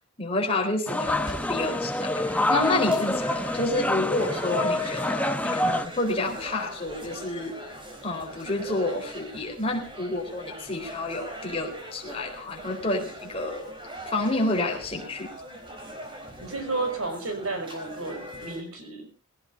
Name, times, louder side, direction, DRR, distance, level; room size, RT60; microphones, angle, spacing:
voice 1, 0.2-2.1 2.5-7.6 8.0-13.7 14.1-15.3, left 2 dB, 25° left, 1 dB, 4.3 m, -29 dB
sound 1, 0.9-5.8, left 1 dB, 5° left, 0.8 m, -26 dB
sound 2, 1.0-18.6, right 1 dB, 20° right, 4.1 m, -41 dB
voice 2, 16.4-19.1, right 3 dB, 75° right, 5 dB, 6.1 m, -32 dB
20.0 x 17.5 x 2.7 m, 0.31 s
head